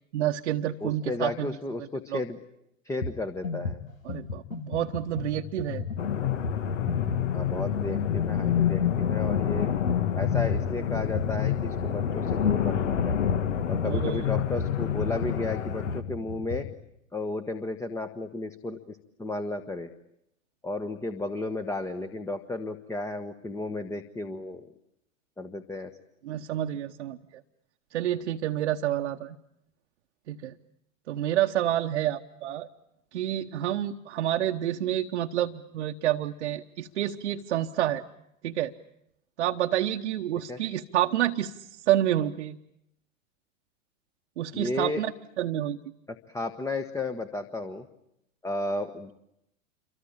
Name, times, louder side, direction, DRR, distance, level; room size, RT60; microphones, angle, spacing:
voice 1, 0.1-1.5 2.1-2.2 4.0-5.8 9.6-9.7 13.8-14.3 26.2-27.2 27.9-29.4 30.3-30.5 31.1-32.7 33.1-38.0 38.4-38.7 39.4-41.6 41.9-42.6 44.4-45.1 45.4-45.8, right 12 dB, 60° right, 3 dB, 1.1 m, -28 dB
voice 2, 0.8-2.4 2.8-3.8 7.3-9.7 10.2-13.2 13.7-16.7 17.1-19.9 20.6-24.7 25.4-25.9 40.5-40.6 44.5-45.0 46.1-47.9 48.4-49.1, left 2 dB, 10° left, 9 dB, 1.2 m, -33 dB
sound 1, 3.0-3.2 3.4-16.7, left 5 dB, 85° left, 1.9 m, -33 dB
sound 2, 6.0-16.0, left 9 dB, 65° left, 1.8 m, -28 dB
27.5 x 24.5 x 8.8 m, 0.81 s
figure-of-eight pair, 100°, 39 cm